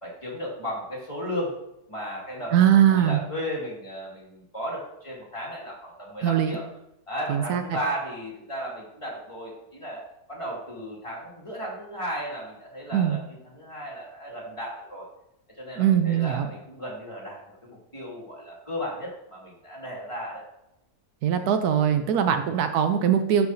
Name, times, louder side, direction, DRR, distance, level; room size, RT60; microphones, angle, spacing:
voice 1, 0.0-1.6 1.9-2.6 2.9-6.6 7.1-10.0 10.3-15.1 15.6-17.4 17.6-20.4 22.3-22.6, equal, 20° left, -4 dB, 1.9 m, -35 dB
voice 2, 2.5-3.2 6.2-6.6 7.3-7.6 12.9-13.2 15.8-16.5 21.2-23.5, right 9 dB, 80° right, 8 dB, 1.1 m, -21 dB
11.5 x 4.9 x 2.6 m, 0.85 s
omnidirectional pair, 1.7 m